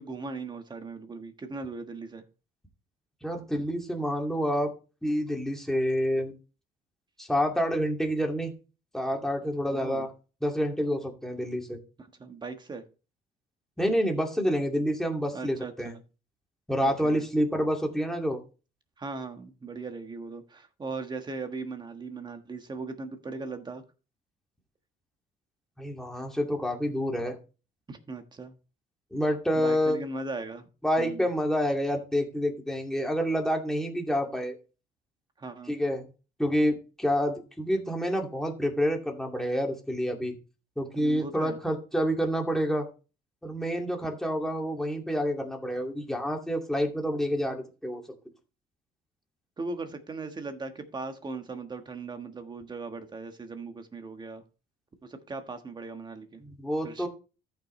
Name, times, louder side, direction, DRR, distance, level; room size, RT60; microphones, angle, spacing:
voice 1, 0.0-2.2 9.7-10.1 12.0-12.8 15.3-15.9 16.8-17.2 19.0-23.8 27.9-28.6 29.5-30.7 31.0-31.2 35.4-35.8 41.0-41.6 49.6-54.4 55.0-56.4 56.8-57.1, right 3 dB, 25° right, 7 dB, 1.4 m, -38 dB
voice 2, 3.2-4.7 5.0-6.3 7.2-8.5 8.9-10.1 10.4-11.8 13.8-15.9 16.7-18.4 25.8-27.4 29.1-30.0 30.8-34.6 35.7-36.0 36.4-40.4 40.8-42.9 43.4-48.0 56.4-57.1, equal, 5° left, 1 dB, 2.3 m, -28 dB
14.0 x 5.9 x 3.2 m, 0.33 s
cardioid pair, 110°, 17 cm